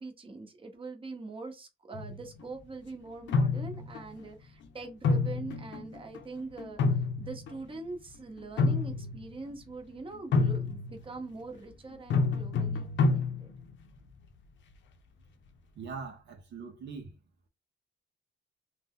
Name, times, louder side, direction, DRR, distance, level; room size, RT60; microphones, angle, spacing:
voice 1, 0.0-6.8 7.2-13.5, right 3 dB, 25° right, 0.9 m, -43 dB
sound 1, 1.9-2.4 3.3-4.0 5.0-6.2 6.6-7.7 8.4-9.3 10.3-11.0 12.1-13.7, left 3 dB, 70° left, 0.6 m, -28 dB
voice 2, 15.8-17.1, right 5 dB, 65° right, 0.7 m, -42 dB
2.7 x 2.2 x 3.6 m
cardioid pair, 90°, 20 cm